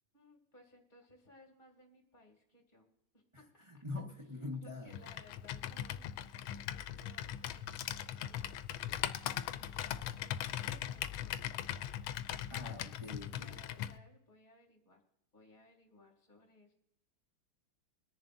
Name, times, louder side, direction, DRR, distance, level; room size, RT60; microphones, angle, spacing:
voice 1, 0.1-2.9 3.1-3.8 4.2-6.1 6.6-9.2 9.5-11.6 13.4-15.0 15.3-16.7, left 1 dB, 25° left, 2 dB, 2.4 m, -62 dB
voice 2, 3.7-4.9 12.5-13.5, left 3 dB, 20° right, -1 dB, 1.1 m, -43 dB
Computer keyboard, 4.9-14.0, left 11 dB, 90° left, 1.4 m, -40 dB
22.5 x 10.5 x 2.6 m, 0.77 s
omnidirectional pair, 2.2 m